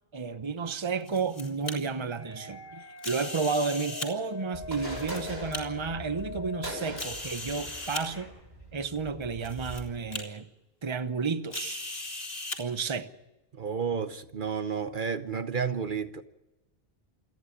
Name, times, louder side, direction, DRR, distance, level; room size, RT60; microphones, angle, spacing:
voice 1, 0.1-8.3 8.7-10.4 10.8-11.8 12.6-13.1, right 5 dB, 30° right, 1.0 m, -32 dB
Old film camera shutter, 0.8-1.7 3.0-4.1 4.8-5.6 6.3-6.4 7.0-8.0 8.9-9.0 9.4-9.8 10.1-10.2 11.5-12.6, left 2 dB, 60° left, 3.1 m, -38 dB
sound 1, 2.2-8.3, left 4 dB, 10° right, 6.8 m, -43 dB
sound 2, 4.5-9.9, right 1 dB, 90° right, 7.7 m, -42 dB
voice 2, 13.5-16.2, right 6 dB, 55° right, 1.1 m, -31 dB
28.0 x 10.5 x 9.8 m
omnidirectional pair, 1.0 m